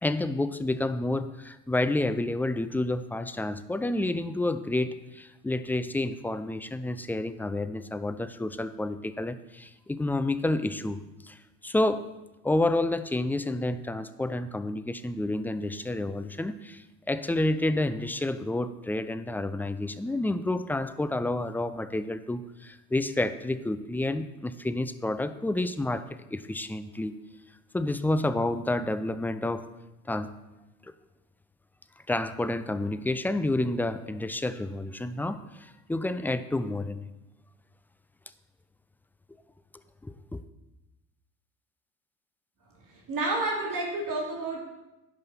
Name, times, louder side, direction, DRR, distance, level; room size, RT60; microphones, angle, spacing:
voice 1, 0.0-12.0 12.4-26.0 26.3-27.1 27.7-29.7 30.1-30.3 32.1-37.1 40.0-40.4, left 2 dB, 5° left, 11 dB, 0.4 m, -29 dB
voice 2, 42.9-44.6, right 2 dB, 45° right, -2 dB, 3.0 m, -30 dB
11.0 x 5.5 x 5.7 m, 0.99 s
hypercardioid pair, 70°, 45 cm